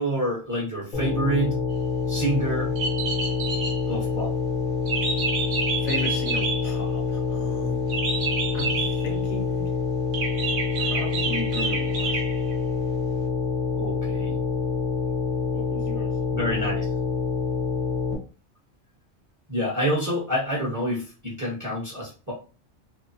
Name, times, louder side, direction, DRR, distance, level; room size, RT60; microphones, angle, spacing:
voice 1, 0.0-1.6 2.1-2.7 3.9-4.3 13.7-14.4 16.3-16.8 19.5-22.3, right 1 dB, 15° right, 0.8 m, -27 dB
sound 1, 0.9-18.1, left 5 dB, 45° left, 0.7 m, -27 dB
sound 2, 2.7-3.9 4.9-6.8 7.9-9.0 10.1-12.5, right 4 dB, 80° right, 1.0 m, -29 dB
voice 2, 5.0-8.1 8.5-9.8 10.8-12.2 15.5-16.2, left 2 dB, 75° left, 1.0 m, -37 dB
2.9 x 2.0 x 2.6 m
omnidirectional pair, 1.3 m